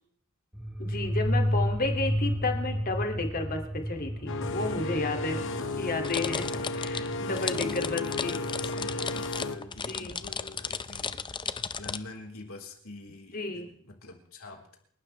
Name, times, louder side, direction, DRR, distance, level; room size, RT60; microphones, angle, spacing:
sound 1, 0.5-8.9, equal, 5° right, 1.6 m, -32 dB
voice 1, 0.8-5.4 5.8-8.4 9.6-10.2 13.3-13.7, left 3 dB, 45° left, 4 dB, 2.5 m, -32 dB
sound 2, 4.3-9.6, left 2 dB, 60° left, 1.2 m, -34 dB
voice 2, 5.4-5.7 7.3-11.3 11.8-14.8, left 2 dB, 75° left, 1 dB, 4.0 m, -45 dB
sound 3, 6.0-12.0, left 6 dB, 20° left, 0.6 m, -35 dB
29.0 x 12.0 x 3.3 m, 0.66 s
head